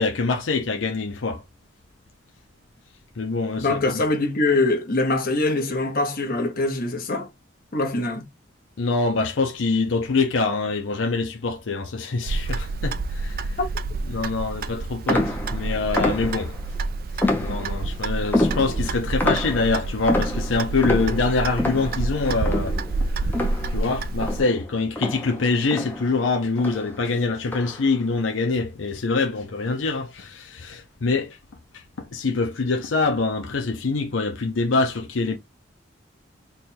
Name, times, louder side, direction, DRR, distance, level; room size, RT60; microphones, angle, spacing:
voice 1, 0.0-1.4 3.2-4.0 8.8-13.6 14.1-16.5 17.4-23.3 23.7-31.4 31.7-35.4, left 3 dB, 85° left, 0.6 m, -25 dB
voice 2, 3.6-7.3 7.7-8.2, left 2 dB, 50° left, 1.1 m, -23 dB
Clock, 12.3-24.4, right 3 dB, 50° right, 0.4 m, -28 dB
sound 1, 15.1-16.7 17.2-17.9 18.3-23.9 24.2-26.3 26.6-27.0 27.5-27.9, left 1 dB, 10° left, 0.7 m, -27 dB
3.4 x 2.3 x 4.3 m
head